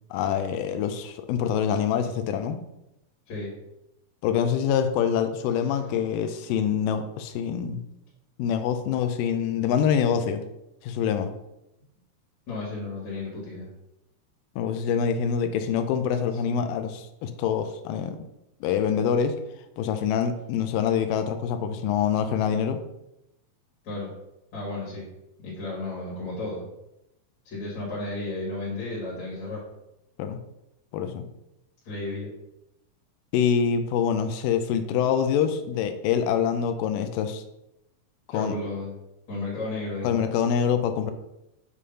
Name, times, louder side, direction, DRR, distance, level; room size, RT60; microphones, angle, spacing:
voice 1, 0.1-2.6 4.2-7.8 8.4-10.4 10.8-11.3 14.6-18.2 18.6-19.3 19.8-22.8 30.2-30.4 30.9-31.3 33.3-37.4 38.3-38.6 40.0-41.1, left 7 dB, 90° left, 8 dB, 2.3 m, -25 dB
voice 2, 12.5-13.7 16.4-16.6 23.8-24.1 24.5-25.0 25.4-26.6 27.4-29.6 31.8-32.3 38.3-38.9 39.3-40.2, left 2 dB, 60° left, -6 dB, 3.0 m, -33 dB
7.2 x 3.3 x 5.6 m, 0.86 s
omnidirectional pair, 3.8 m